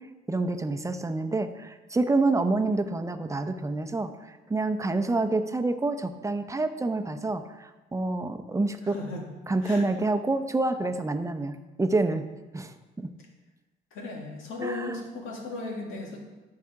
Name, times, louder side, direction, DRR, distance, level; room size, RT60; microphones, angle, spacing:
voice 1, 0.3-8.9 9.5-12.3 12.5-13.1 14.6-15.0, right 2 dB, 15° right, 8 dB, 0.7 m, -28 dB
voice 2, 8.8-9.2 9.6-9.8 13.9-16.2, left 2 dB, 90° left, 0 dB, 1.9 m, -36 dB
12.0 x 4.9 x 4.7 m, 1.2 s
cardioid pair, 90°, 20 cm